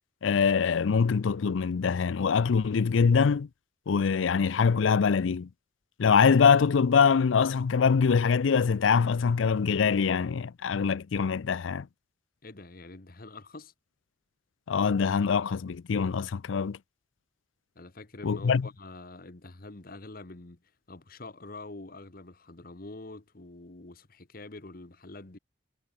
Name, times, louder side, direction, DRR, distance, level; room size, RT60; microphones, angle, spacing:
voice 1, 0.2-3.5 3.9-5.5 6.0-11.9 14.7-16.8 18.2-18.7, left 6 dB, 85° left, 0.5 m, -24 dB
voice 2, 12.4-13.7 17.7-20.6 20.9-25.4, left 2 dB, 50° left, 1.2 m, -45 dB
head